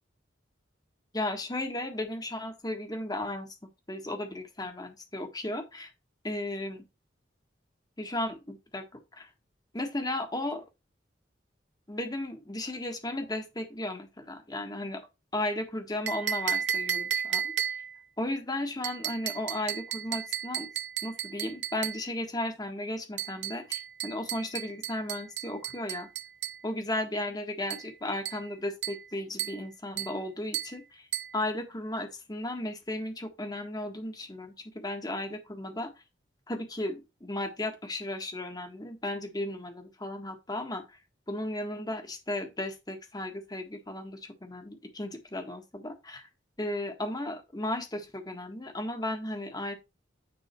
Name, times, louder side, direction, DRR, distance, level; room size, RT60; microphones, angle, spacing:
voice 1, 1.1-3.5 3.9-5.9 6.2-6.8 8.0-9.3 9.7-10.6 11.9-15.0 15.3-17.8 18.2-20.7 21.0-26.1 26.6-31.1 31.3-35.9 36.5-41.0 41.3-46.3 46.6-49.8, left 1 dB, 20° left, 1.6 m, -35 dB
sound 1, 16.1-18.0 18.8-22.1 23.2-26.6 27.7-27.9 28.2-28.5 28.8-29.1 29.4-29.7 30.0-30.2 30.5-30.8 31.1-31.4, right 9 dB, 65° right, 0.7 m, -34 dB
9.9 x 3.7 x 4.5 m
head